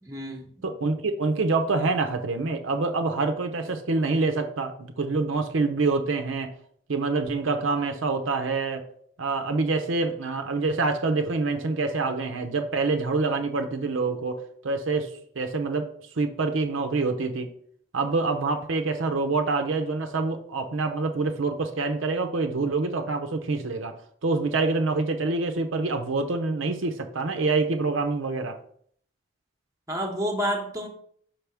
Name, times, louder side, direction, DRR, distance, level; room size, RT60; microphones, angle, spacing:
voice 1, 0.0-0.6 29.9-30.9, equal, 15° right, 2 dB, 0.9 m, -29 dB
voice 2, 0.6-6.5 6.9-8.8 9.2-15.9 16.2-17.5 17.9-23.9 24.2-28.6, right 3 dB, 80° right, 6 dB, 0.6 m, -26 dB
5.7 x 3.4 x 5.8 m, 0.62 s
head